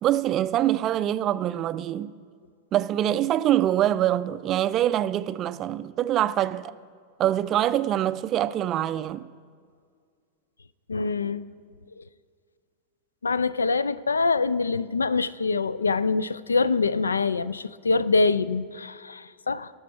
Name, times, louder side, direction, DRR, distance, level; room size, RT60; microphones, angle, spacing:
voice 1, 0.0-2.1 2.7-6.8 7.2-9.3, right 12 dB, 30° right, 0.3 m, -24 dB
voice 2, 10.9-11.4 12.0-12.1 13.2-19.7, left 4 dB, 75° left, 0.3 m, -25 dB
17.5 x 6.9 x 4.5 m
figure-of-eight pair, 90°, 0 cm